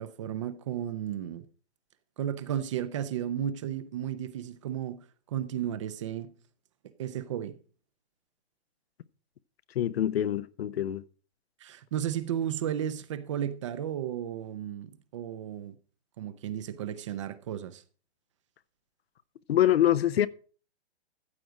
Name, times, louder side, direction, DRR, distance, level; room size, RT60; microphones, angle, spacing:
voice 1, 0.0-1.5 2.2-6.3 7.0-7.6 11.6-15.7 16.2-17.8, right 10 dB, 30° right, 0.6 m, -34 dB
voice 2, 9.7-11.0 19.5-20.3, left 11 dB, 65° left, 0.7 m, -25 dB
14.5 x 7.6 x 4.8 m
hypercardioid pair, 160°, 34 cm